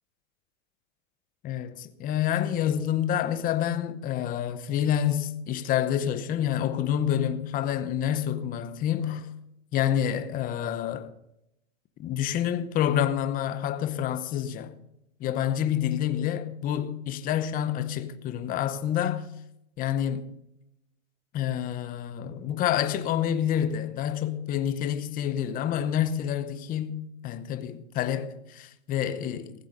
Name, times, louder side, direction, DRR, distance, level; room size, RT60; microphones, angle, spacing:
voice 1, 1.4-9.3 9.7-11.1 12.0-14.8 15.2-19.3 19.8-20.3 21.3-29.7, left 10 dB, 20° left, 0.8 m, -28 dB
15.5 x 7.9 x 6.6 m
supercardioid pair, 145°, 40 cm